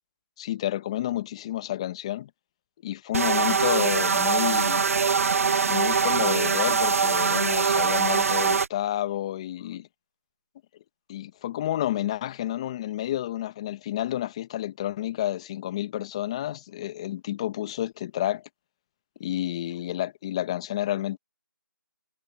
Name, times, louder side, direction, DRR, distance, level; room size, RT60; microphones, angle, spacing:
voice 1, 0.4-2.3 2.8-4.9 5.7-9.9 11.1-18.4 19.2-21.2, left 13 dB, 15° left, 1.1 m, -30 dB
sound 1, 3.1-8.7, right 5 dB, 40° right, 0.8 m, -23 dB
figure-of-eight pair, 165°, 12 cm